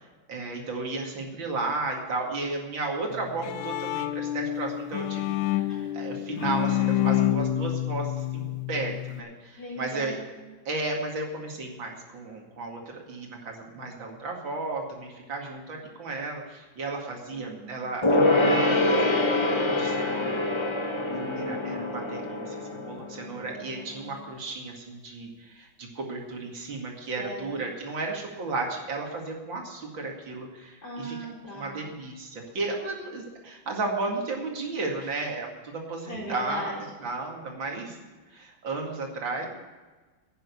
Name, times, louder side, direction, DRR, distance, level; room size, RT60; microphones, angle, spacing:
voice 1, 0.0-10.2 10.7-20.4 21.1-31.2 31.5-36.7 37.0-38.0 38.3-39.5, right 3 dB, 75° right, 0 dB, 3.0 m, -34 dB
Bowed string instrument, 3.1-9.2, left 12 dB, 75° left, 1.3 m, -28 dB
voice 2, 6.2-7.1 9.6-10.4 17.3-17.8 21.0-22.0 27.2-27.5 30.8-31.9 35.0-35.2 36.1-36.8, equal, 55° left, -5 dB, 5.2 m, -39 dB
Gong, 18.0-23.9 24.2-24.3, left 2 dB, 25° left, 0.6 m, -25 dB
11.0 x 9.5 x 8.2 m, 1.3 s
omnidirectional pair, 2.1 m